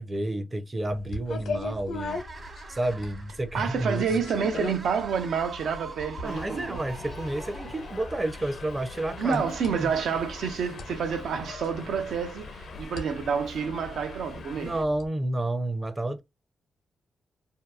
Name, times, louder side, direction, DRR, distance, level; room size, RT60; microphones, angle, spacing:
voice 1, 0.0-2.2 2.7-4.2 6.2-9.4 9.7-9.9 14.6-16.2, right 1 dB, 25° right, 0.5 m, -30 dB
sound 1, 0.9-15.1, left 2 dB, 80° left, 0.8 m, -40 dB
sound 2, 1.9-13.2, right 3 dB, 40° right, 1.0 m, -46 dB
voice 2, 3.5-6.8 9.2-14.7, right 6 dB, 75° right, 0.5 m, -29 dB
Subway metro underground, 6.2-14.8, left 5 dB, 65° left, 0.5 m, -44 dB
2.7 x 2.3 x 2.3 m
cardioid pair, 85°, 0 cm